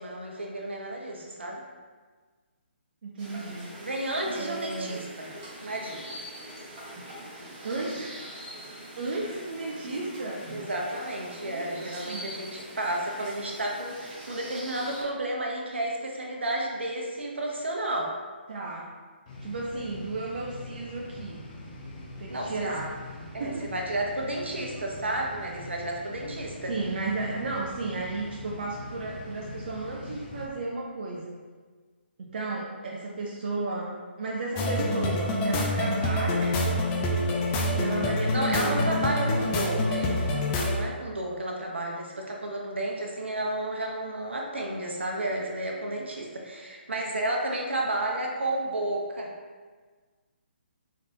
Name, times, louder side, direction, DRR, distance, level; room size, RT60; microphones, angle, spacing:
voice 1, 0.0-1.6 3.8-5.3 5.6-6.2 10.5-18.1 22.3-22.8 23.3-26.7 38.3-40.3 40.6-49.3, right 1 dB, 70° right, 0 dB, 0.8 m, -32 dB
voice 2, 3.0-3.8 4.3-5.0 7.6-8.3 9.0-10.4 11.4-12.3 18.5-18.9 19.4-21.4 22.2-23.7 26.7-31.4 32.2-36.8 37.7-39.1, right 3 dB, 50° right, -3 dB, 0.5 m, -34 dB
sound 1, 3.2-15.0, right 1 dB, 25° right, 1.4 m, -43 dB
sound 2, 19.3-30.4, left 2 dB, 40° left, 0.9 m, -43 dB
sound 3, 34.6-40.8, left 1 dB, 20° left, 0.4 m, -26 dB
3.8 x 3.4 x 2.7 m, 1.5 s
figure-of-eight pair, 140°, 6 cm